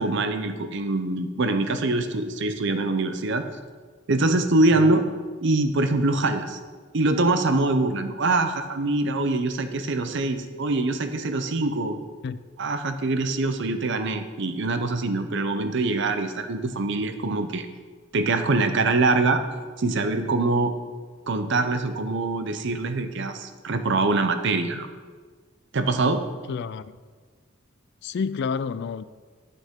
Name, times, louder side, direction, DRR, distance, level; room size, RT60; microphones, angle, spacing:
voice 1, 0.0-3.4 4.1-5.0 5.4-6.6 6.9-12.0 12.6-17.7 18.1-19.4 19.8-20.7 21.3-24.9 25.7-26.2, right 2 dB, 65° right, 8 dB, 0.7 m, -24 dB
voice 2, 26.5-27.0 28.0-29.0, left 5 dB, 60° left, 15 dB, 0.3 m, -29 dB
9.1 x 6.8 x 3.7 m, 1.5 s
head